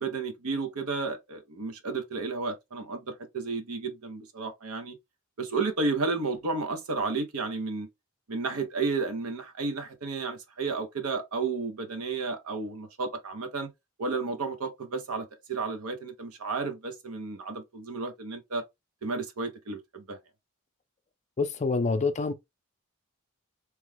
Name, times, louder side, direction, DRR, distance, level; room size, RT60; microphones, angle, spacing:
voice 1, 0.0-5.0 5.4-7.9 8.3-13.7 14.0-18.6 19.0-20.2, right 4 dB, 80° right, 0.8 m, -32 dB
voice 2, 21.4-22.3, left 4 dB, 30° left, 0.5 m, -26 dB
3.0 x 2.3 x 3.3 m
head